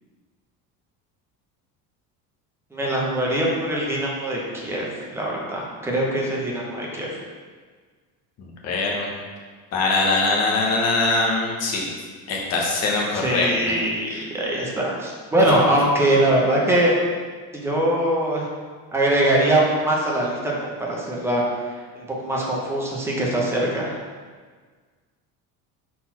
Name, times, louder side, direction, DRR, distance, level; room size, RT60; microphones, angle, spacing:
voice 1, 2.7-7.1 13.2-16.9 17.5-18.5 18.9-21.4 21.7-23.9, right 1 dB, 5° right, -4 dB, 0.8 m, -22 dB
voice 2, 8.4-9.1 9.7-11.9 12.3-13.7 14.1-14.2, left 3 dB, 45° left, -1 dB, 1.2 m, -22 dB
4.3 x 4.1 x 5.5 m, 1.5 s
cardioid pair, 175°, 35 cm